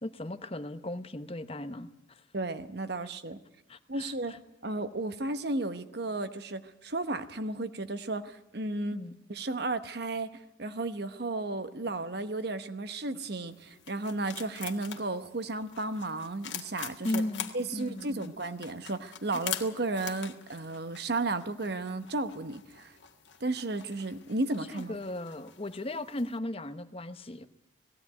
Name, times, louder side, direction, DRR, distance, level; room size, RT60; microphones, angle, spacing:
voice 1, 0.0-2.2 3.7-4.4 8.9-9.1 17.0-18.3 24.7-27.5, left 1 dB, 30° left, 11 dB, 0.9 m, -37 dB
voice 2, 2.3-3.4 3.9-9.0 9.3-10.3 10.6-17.2 17.5-23.0 23.4-25.0, right 2 dB, 55° right, 10 dB, 1.0 m, -34 dB
sound 1, 13.5-26.4, left 9 dB, 65° left, 1.8 m, -44 dB
18.0 x 16.5 x 9.4 m, 0.87 s
head